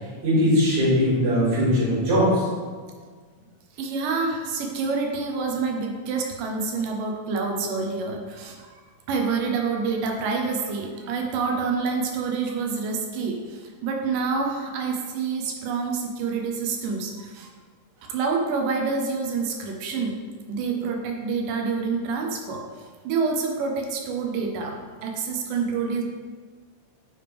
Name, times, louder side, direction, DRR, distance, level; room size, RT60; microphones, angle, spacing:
voice 1, 0.2-2.5, equal, 60° right, -9 dB, 3.2 m, -20 dB
voice 2, 3.7-8.7 9.1-17.5 18.1-20.2 20.5-26.0, right 4 dB, 85° right, 1 dB, 2.3 m, -27 dB
8.9 x 3.4 x 3.3 m, 1.5 s
omnidirectional pair, 3.8 m